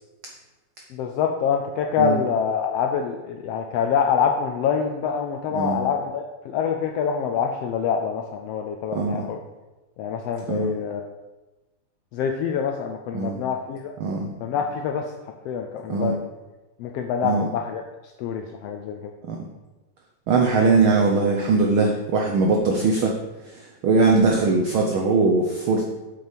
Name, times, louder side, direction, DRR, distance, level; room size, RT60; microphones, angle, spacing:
voice 1, 0.9-9.4 10.0-11.1 12.1-13.9 14.4-15.1 15.4-16.2 16.8-17.8 18.2-19.1, left 7 dB, 80° left, 4 dB, 1.4 m, -25 dB
voice 2, 8.9-9.3 10.5-10.7 13.1-13.4 14.0-14.3 15.9-16.1 17.2-17.5 19.3-19.4 20.3-23.1 23.4-25.9, right 3 dB, 80° right, 1 dB, 1.1 m, -21 dB
8.0 x 5.5 x 5.1 m, 1.1 s
omnidirectional pair, 3.3 m